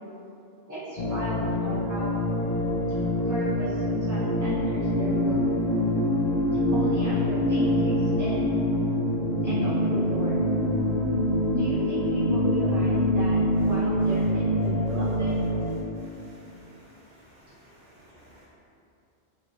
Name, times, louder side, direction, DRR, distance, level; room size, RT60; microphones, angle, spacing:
voice 1, 0.7-2.1 3.3-5.5 6.7-8.6 9.4-10.4 11.5-15.3, equal, 20° right, -12 dB, 0.5 m, -34 dB
sound 1, 1.0-15.7, left 1 dB, 50° left, 0.5 m, -25 dB
voice 2, 16.0-16.9 17.8-18.4, right 1 dB, 65° right, -7 dB, 0.8 m, -54 dB
5.5 x 2.4 x 3.2 m, 2.7 s
omnidirectional pair, 1.2 m